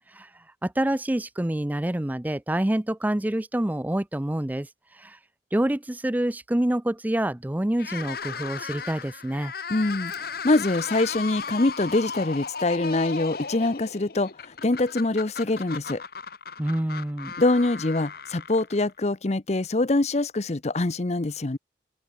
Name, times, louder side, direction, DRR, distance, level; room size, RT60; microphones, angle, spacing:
voice 1, 0.6-4.7 5.0-5.2 5.5-9.5 16.6-17.3, right 1 dB, 10° right, 0.4 m, -27 dB
sound 1, 7.7-19.0, left 5 dB, 55° left, 1.4 m, -36 dB
voice 2, 9.7-16.0 17.4-21.6, left 2 dB, 40° left, 0.8 m, -24 dB
open air
head